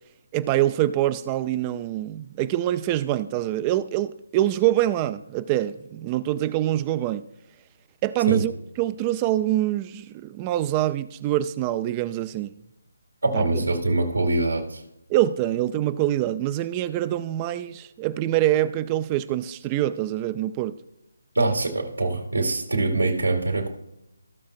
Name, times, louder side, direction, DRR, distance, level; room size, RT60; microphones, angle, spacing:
voice 1, 0.3-7.3 8.0-12.5 13.3-13.5 15.1-20.8, right 13 dB, 20° right, 0.4 m, -25 dB
voice 2, 13.2-14.8 21.4-23.7, right 2 dB, 85° right, 2.1 m, -23 dB
15.0 x 6.6 x 2.4 m
figure-of-eight pair, 160°, 0 cm